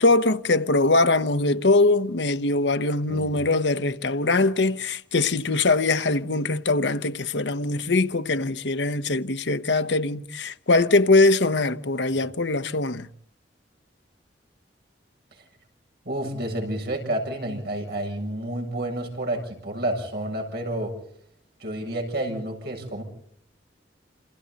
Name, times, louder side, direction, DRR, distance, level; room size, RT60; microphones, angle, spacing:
voice 1, 0.0-13.1, left 2 dB, 75° left, 1.0 m, -22 dB
voice 2, 16.1-21.0 21.6-23.0, right 1 dB, 65° right, 7.4 m, -30 dB
29.0 x 28.0 x 4.1 m
head